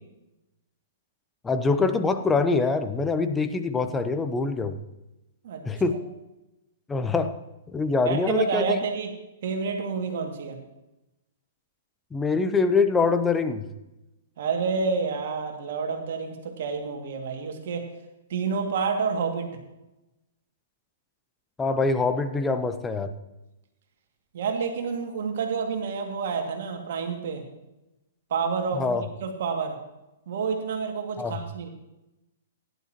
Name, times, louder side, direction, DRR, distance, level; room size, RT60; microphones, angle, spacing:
voice 1, 1.4-4.8 5.6-6.0 6.9-7.3 7.7-8.8 12.1-13.6 21.6-23.1 28.7-29.0 31.2-31.3, left 4 dB, 10° left, 9 dB, 0.9 m, -24 dB
voice 2, 8.0-9.1 9.4-10.6 14.4-17.8 18.3-19.5 24.3-27.4 28.3-29.8 30.3-31.7, right 5 dB, 55° right, 3 dB, 2.3 m, -29 dB
17.0 x 11.0 x 3.0 m, 0.96 s
figure-of-eight pair, 115°, 0 cm